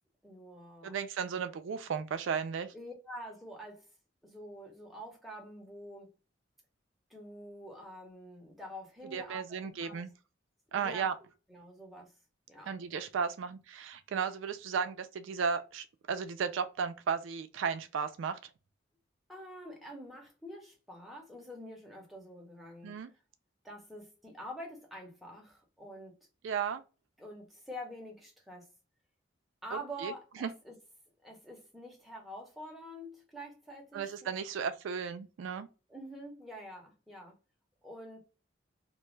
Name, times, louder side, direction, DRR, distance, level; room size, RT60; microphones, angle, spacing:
voice 1, 0.2-1.0 2.7-3.9 4.2-6.1 7.1-10.0 10.7-11.1 11.5-12.1 12.5-12.8 19.3-23.0 23.6-26.2 27.2-28.7 29.6-30.7 31.2-34.3 35.9-37.4 37.8-38.2, equal, ahead, 0.7 m, -46 dB
voice 2, 0.8-2.7 9.1-10.1 10.7-11.2 12.7-18.4 22.8-23.1 26.4-26.8 29.7-30.1 30.4-30.5 33.9-35.7, right 6 dB, 80° right, 0.3 m, -35 dB
2.5 x 2.2 x 3.0 m
head